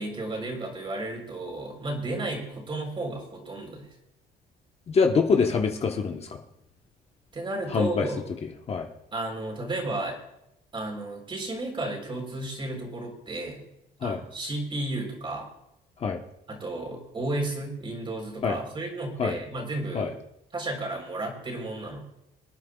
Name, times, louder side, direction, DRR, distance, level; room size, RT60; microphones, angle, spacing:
voice 1, 0.0-3.9 7.3-8.2 9.1-10.2 10.7-13.7 14.0-15.5 16.5-20.1 20.5-22.0, right 2 dB, 30° right, 1 dB, 4.0 m, -33 dB
voice 2, 4.9-6.4 7.7-8.1 8.7-8.9 14.0-14.2 16.0-16.2 18.4-18.6 19.2-19.4 19.9-20.1, left 5 dB, 35° left, 3 dB, 1.2 m, -24 dB
25.5 x 9.4 x 2.4 m, 0.82 s
cardioid pair, 110°, 17 cm